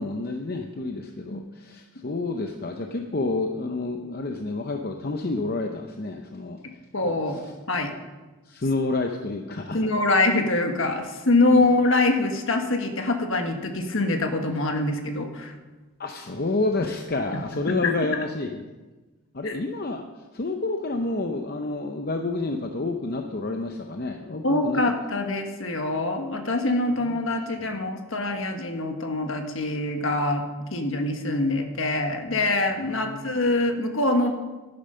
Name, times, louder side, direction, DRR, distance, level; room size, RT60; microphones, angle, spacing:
voice 1, 0.0-6.6 7.0-7.5 8.5-9.8 16.0-18.6 19.3-20.1 20.3-24.8 27.0-27.2 27.6-27.7 32.9-33.3, left 2 dB, 40° left, 4 dB, 0.7 m, -29 dB
voice 2, 6.9-7.4 7.7-7.9 9.7-15.5 17.7-17.8 19.4-19.5 24.4-34.3, left 2 dB, 60° left, 4 dB, 1.4 m, -24 dB
11.0 x 10.5 x 5.6 m, 1.2 s
head